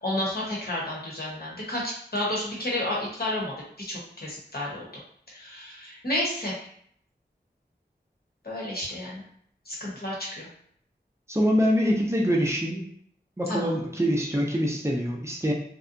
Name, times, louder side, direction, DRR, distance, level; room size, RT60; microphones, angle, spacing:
voice 1, 0.0-3.5 3.9-4.9 5.3-6.6 8.4-9.2 9.7-10.5 13.5-13.8, left 1 dB, 60° left, -5 dB, 1.0 m, -31 dB
voice 2, 11.3-12.8 13.4-15.5, equal, 15° right, -2 dB, 0.5 m, -24 dB
2.6 x 2.2 x 2.5 m, 0.64 s
wide cardioid pair, 55°, 18 cm